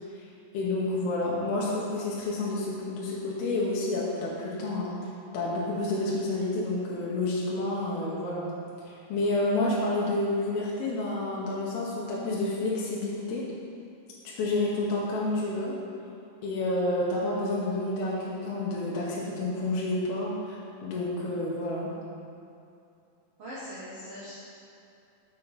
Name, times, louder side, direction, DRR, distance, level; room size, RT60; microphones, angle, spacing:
voice 1, 0.5-5.1 5.3-8.5 8.8-13.4 14.2-15.8 16.4-21.9, left 2 dB, 80° left, -5 dB, 2.7 m, -29 dB
voice 2, 23.4-24.4, equal, 65° right, -11 dB, 1.4 m, -41 dB
6.8 x 5.7 x 4.0 m, 2.6 s
omnidirectional pair, 4.4 m